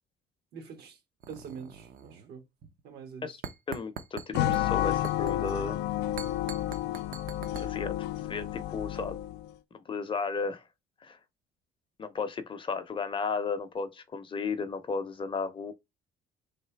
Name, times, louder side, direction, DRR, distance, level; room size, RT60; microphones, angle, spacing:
voice 1, 0.5-1.0 1.3-2.4 2.8-3.3 8.9-9.1, right 6 dB, 70° right, 1.4 m, -44 dB
sound 1, 1.2-2.4 2.6-2.8 3.4-4.6 5.0-5.5 6.2-7.7, right 7 dB, 55° right, 0.6 m, -43 dB
voice 2, 3.7-5.8 7.5-8.0 8.3-9.1 9.7-10.6 11.0-11.2 12.0-15.7, left 4 dB, 30° left, 0.6 m, -34 dB
sound 2, 4.3-9.5, left 13 dB, 85° left, 0.4 m, -31 dB
3.3 x 2.8 x 4.4 m
cardioid pair, 110°, 17 cm